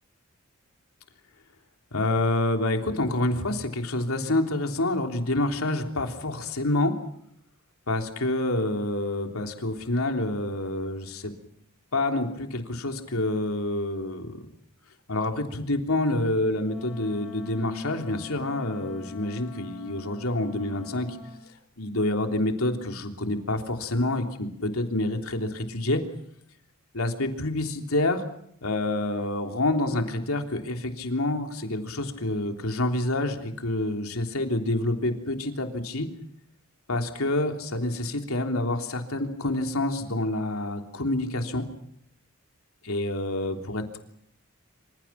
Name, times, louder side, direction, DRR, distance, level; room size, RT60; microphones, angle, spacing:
voice 1, 1.9-6.9 7.9-11.3 11.9-14.5 15.1-21.1 21.8-26.0 26.9-28.2 28.6-36.1 36.9-41.6 42.8-44.0, left 1 dB, 85° left, 4 dB, 3.4 m, -27 dB
Wind instrument woodwind instrument, 16.6-21.4, left 5 dB, ahead, 4.9 m, -44 dB
27.0 x 26.5 x 5.9 m, 0.72 s
head